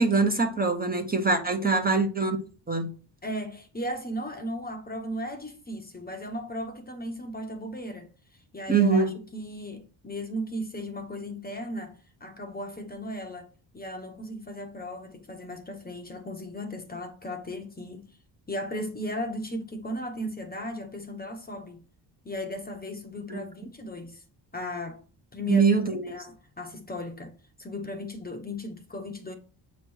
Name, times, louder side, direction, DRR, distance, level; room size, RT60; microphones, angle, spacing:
voice 1, 0.0-2.4 2.7-2.9 8.7-9.1 23.3-23.4 25.5-26.1, right 4 dB, 20° right, 0.8 m, -23 dB
voice 2, 3.2-8.1 8.5-12.0 12.2-13.5 13.7-18.1 18.5-21.8 22.2-24.2 24.5-25.0 25.3-25.7 26.0-27.3 27.6-29.3, left 1 dB, 20° left, 0.9 m, -36 dB
7.8 x 3.1 x 6.2 m
cardioid pair, 130°, 46 cm